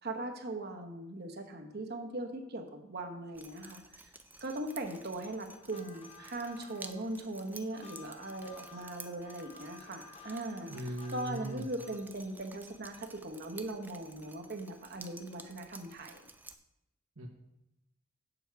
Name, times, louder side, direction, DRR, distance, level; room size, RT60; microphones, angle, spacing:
voice 1, 0.0-3.8 4.4-10.7 11.1-16.3, right 2 dB, 50° right, 4 dB, 1.1 m, -40 dB
Drip, 3.3-16.5, right 2 dB, 10° right, 0.5 m, -53 dB
sound 1, 5.5-12.1, left 4 dB, 30° left, 0.8 m, -55 dB
voice 2, 10.7-11.7 17.2-17.3, equal, 80° right, 0 dB, 1.2 m, -39 dB
7.8 x 7.0 x 4.7 m, 0.87 s
head